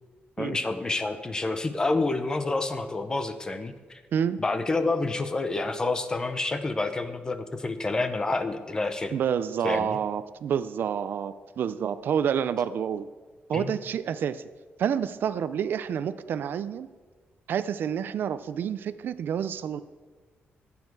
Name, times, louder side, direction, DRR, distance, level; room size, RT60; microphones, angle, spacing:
voice 1, 0.4-4.0 4.4-9.1 9.6-10.0 13.5-13.7, left 3 dB, 20° left, 10 dB, 0.7 m, -28 dB
voice 2, 4.1-4.4 9.1-13.1 13.5-14.4 14.8-16.9 17.5-19.8, right 8 dB, 60° right, 14 dB, 0.4 m, -28 dB
14.0 x 9.6 x 4.7 m, 1.4 s
wide cardioid pair, 175°, 4 cm